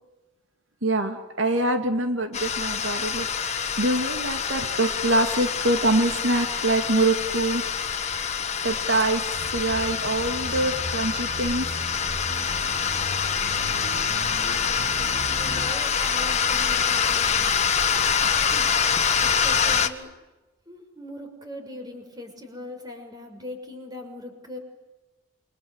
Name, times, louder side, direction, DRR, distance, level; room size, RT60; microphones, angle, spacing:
voice 1, 0.8-7.6 8.6-11.7, right 2 dB, 80° right, 6 dB, 2.4 m, -25 dB
sound 1, 2.3-19.9, left 6 dB, 35° left, 1.6 m, -25 dB
sound 2, 9.4-15.7, equal, 50° right, 2.2 m, -38 dB
voice 2, 15.3-17.6 18.2-18.7 19.2-20.1 20.7-24.6, left 1 dB, 20° right, 4 dB, 6.2 m, -40 dB
29.5 x 25.0 x 8.1 m, 1.1 s
head